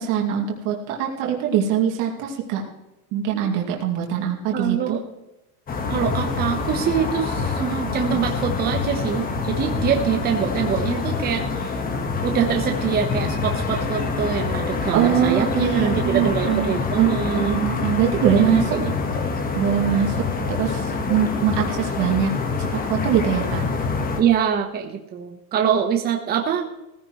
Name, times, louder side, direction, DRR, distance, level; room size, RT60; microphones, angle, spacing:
voice 1, 0.0-2.6 3.1-5.0 14.9-18.8 19.5-20.2 20.5-22.3 22.6-23.6, right 9 dB, 45° right, -1 dB, 2.5 m, -23 dB
voice 2, 4.5-5.0 5.9-11.8 12.2-17.6 18.4-18.9 24.2-26.7, right 8 dB, 20° right, 4 dB, 1.1 m, -24 dB
sound 1, 5.7-24.2, left 4 dB, 20° left, 1.5 m, -26 dB
16.5 x 15.5 x 3.2 m, 0.94 s
supercardioid pair, 135°, 44 cm